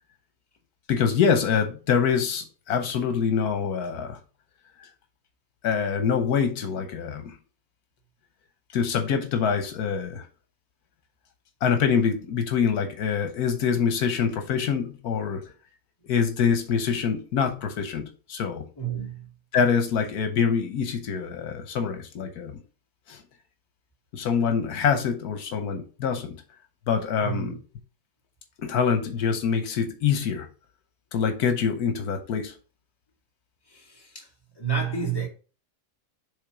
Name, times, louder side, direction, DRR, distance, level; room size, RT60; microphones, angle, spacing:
voice 1, 0.9-4.2 5.6-7.3 8.7-10.2 11.6-15.4 16.1-18.7 19.5-22.6 23.1-23.2 24.1-26.3 26.9-27.6 28.6-30.5 31.1-32.5, left 6 dB, 80° left, 1.4 m, -25 dB
voice 2, 18.8-19.3 27.2-27.6 33.7-34.3 34.6-35.3, right 7 dB, 15° left, 2.0 m, -30 dB
7.1 x 3.5 x 4.8 m
omnidirectional pair, 1.6 m